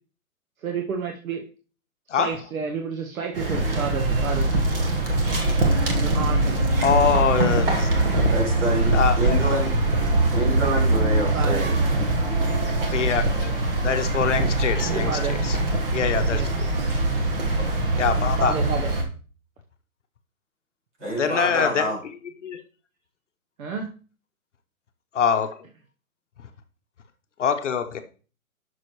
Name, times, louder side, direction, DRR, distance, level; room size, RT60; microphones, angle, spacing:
voice 1, 0.6-1.5 2.2-4.5 6.0-6.6 7.4-7.7 11.3-11.7 14.8-15.4 16.3-16.5 18.4-18.9 23.6-23.9, right 5 dB, 75° right, 1.1 m, -30 dB
sound 1, 3.3-19.0, right 2 dB, 40° right, 1.3 m, -22 dB
voice 2, 6.8-8.3 8.9-9.4 12.9-15.1 15.5-15.6 15.9-16.5 18.0-18.5 21.1-21.9 22.4-22.6 25.1-25.6 27.4-28.0, left 7 dB, 55° left, 0.8 m, -24 dB
voice 3, 8.3-9.7 10.3-11.8 21.0-22.0, right 1 dB, 55° right, 4.8 m, -27 dB
9.0 x 6.3 x 3.1 m
hypercardioid pair, 175°, 42 cm